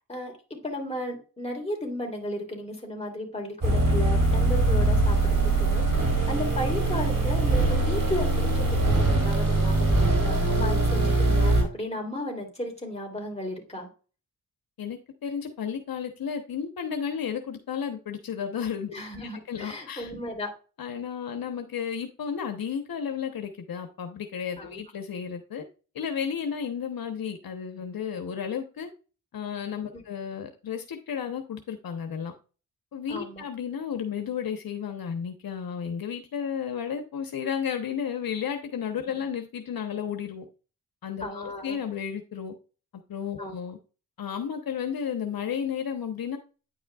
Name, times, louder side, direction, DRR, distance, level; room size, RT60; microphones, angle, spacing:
voice 1, 0.1-5.9 6.3-13.9 18.9-20.5 24.6-24.8 29.9-30.0 33.1-33.4 41.2-41.8 43.4-43.5, left 1 dB, 20° left, 3.2 m, -34 dB
sound 1, 3.6-11.6, right 2 dB, 60° right, 3.2 m, -22 dB
voice 2, 14.8-18.9 19.5-20.1 20.8-25.6 25.9-28.9 29.3-32.3 32.9-40.4 41.0-42.5 43.1-43.8 44.2-46.4, left 7 dB, 75° left, 1.0 m, -33 dB
9.5 x 5.4 x 2.4 m
cardioid pair, 75°, 35 cm